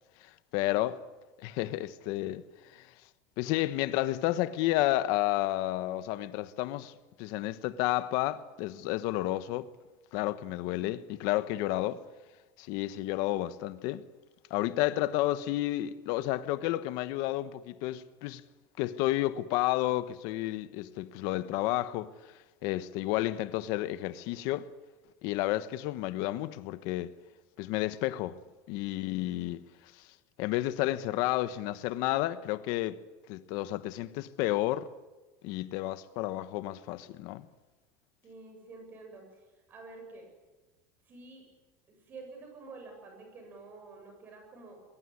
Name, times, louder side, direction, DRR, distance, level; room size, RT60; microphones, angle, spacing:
voice 1, 0.2-1.0 1.4-2.4 2.7-2.9 3.4-9.7 10.1-12.0 12.6-14.0 14.5-18.4 18.8-22.3 22.6-24.7 25.2-27.1 27.6-28.4 28.7-29.6 29.9-30.0 30.4-33.0 33.3-34.9 35.4-37.5, left 16 dB, 55° left, 1.1 m, -31 dB
voice 2, 38.2-40.3 41.1-41.5 41.9-44.8, right 3 dB, 25° right, 7.6 m, -49 dB
22.5 x 22.0 x 9.7 m
cardioid pair, 175°, 8 cm